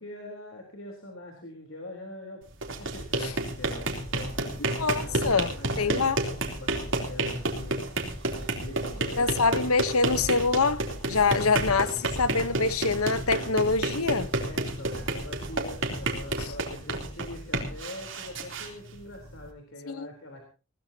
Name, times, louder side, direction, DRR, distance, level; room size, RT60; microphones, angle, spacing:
voice 1, 0.0-2.4 2.8-9.7 11.1-12.1 14.4-20.5, left 1 dB, 70° left, 3.8 m, -43 dB
sound 1, 2.5-19.5, right 2 dB, 60° right, 3.4 m, -31 dB
voice 2, 4.8-5.5 5.8-6.2 9.2-14.3 16.4-16.5 19.9-20.1, left 4 dB, 90° left, 1.1 m, -25 dB
20.5 x 19.0 x 2.9 m
head